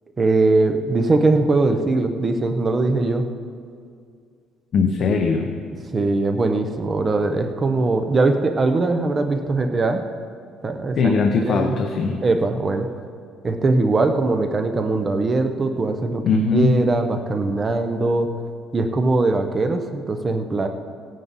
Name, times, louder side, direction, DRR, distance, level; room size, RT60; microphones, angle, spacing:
voice 1, 0.2-3.3 5.9-10.0 10.6-11.1 11.4-11.8 12.2-12.9 13.4-16.2 16.5-18.3 18.7-20.7, right 3 dB, 20° right, 6 dB, 0.6 m, -21 dB
voice 2, 4.7-5.5 11.0-12.2 16.2-16.8, left 4 dB, 40° left, 3 dB, 0.7 m, -20 dB
16.5 x 9.3 x 4.1 m, 2.3 s
cardioid pair, 170°, 0 cm